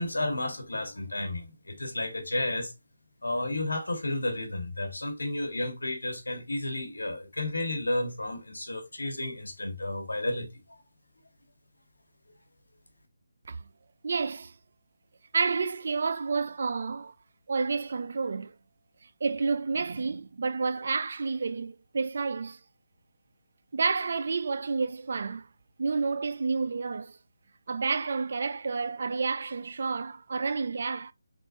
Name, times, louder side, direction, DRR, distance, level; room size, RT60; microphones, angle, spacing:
voice 1, 0.0-2.7 3.2-10.5, left 1 dB, 85° left, 1.4 m, -32 dB
voice 2, 14.0-14.6 15.3-17.2 17.5-18.5 19.0-22.6 23.7-25.5 25.8-27.2 27.7-31.1, right 4 dB, 55° right, 0.4 m, -30 dB
4.0 x 3.6 x 2.6 m
figure-of-eight pair, 160°, 0 cm